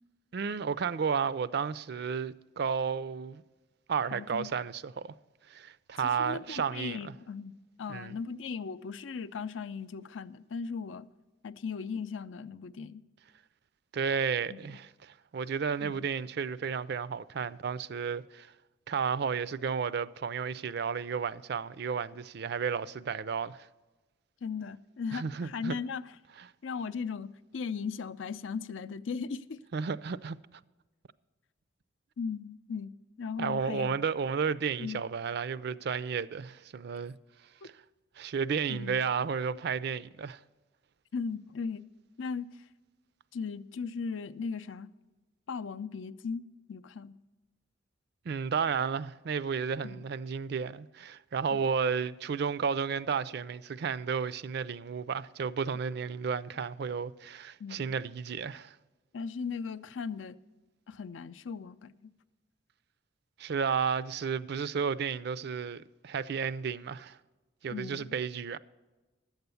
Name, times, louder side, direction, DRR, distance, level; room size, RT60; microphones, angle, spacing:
voice 1, 0.3-3.4 3.9-5.1 5.5-7.1 7.9-8.1 13.9-18.5 18.9-23.7 25.1-25.8 26.4-26.5 29.7-30.4 33.4-37.1 37.6-37.7 38.2-40.4 48.3-58.8 63.4-67.2 67.6-68.6, right 6 dB, 55° right, 0.4 m, -32 dB
voice 2, 4.1-4.5 6.0-7.5 7.8-11.1 11.4-13.0 14.5-14.8 15.8-16.0 24.4-26.0 26.6-29.6 32.2-32.9 33.2-34.0 34.8-35.0 38.7-39.2 41.1-41.9 42.2-42.5 43.3-44.9 45.5-46.4 46.7-47.1 49.8-50.0 51.5-51.7 57.6-58.0 59.1-60.4 60.9-62.0 67.7-68.1, left 5 dB, 80° left, 0.5 m, -37 dB
11.5 x 8.0 x 6.9 m
head